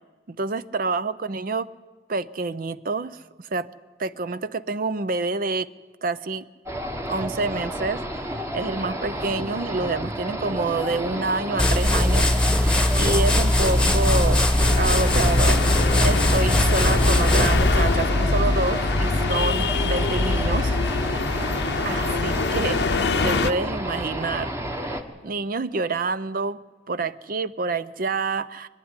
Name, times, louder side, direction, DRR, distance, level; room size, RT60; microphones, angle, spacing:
voice 1, 0.3-1.7 2.1-3.7 4.0-5.7 6.0-6.4 7.1-14.5 14.8-20.8 21.8-24.5 24.8-26.6 26.9-28.7, right 3 dB, 50° right, 15 dB, 0.6 m, -28 dB
sound 1, 6.7-25.0, equal, 15° right, 1.3 m, -31 dB
sound 2, 11.6-18.1, left 1 dB, 5° left, 1.2 m, -20 dB
sound 3, 14.6-23.5, left 3 dB, 60° left, 0.7 m, -24 dB
23.5 x 11.5 x 9.7 m, 1.4 s
head